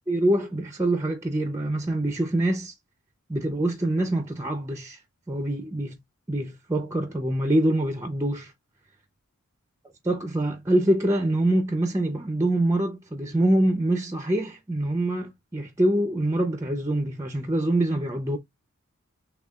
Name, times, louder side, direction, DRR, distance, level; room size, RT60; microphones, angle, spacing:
voice 1, 0.1-2.8 3.3-5.0 5.3-6.0 6.3-8.5 10.0-18.4, right 1 dB, 15° right, 0.5 m, -25 dB
6.3 x 2.3 x 2.3 m
head